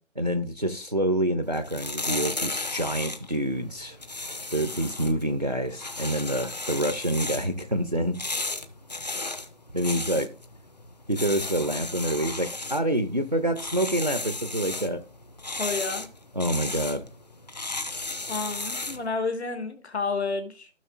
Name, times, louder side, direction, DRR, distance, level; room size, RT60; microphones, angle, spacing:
voice 1, 0.2-4.0 4.5-8.2 9.0-9.3 9.7-10.3 11.1-15.0 16.4-17.0, right 1 dB, 35° right, 10 dB, 0.4 m, -27 dB
sound 1, 1.4-19.1, left 2 dB, 35° left, 0.7 m, -35 dB
voice 2, 15.6-16.1 18.3-20.7, left 4 dB, 55° left, 7 dB, 1.4 m, -30 dB
15.0 x 6.2 x 2.4 m, 0.39 s
figure-of-eight pair, 160°, 38 cm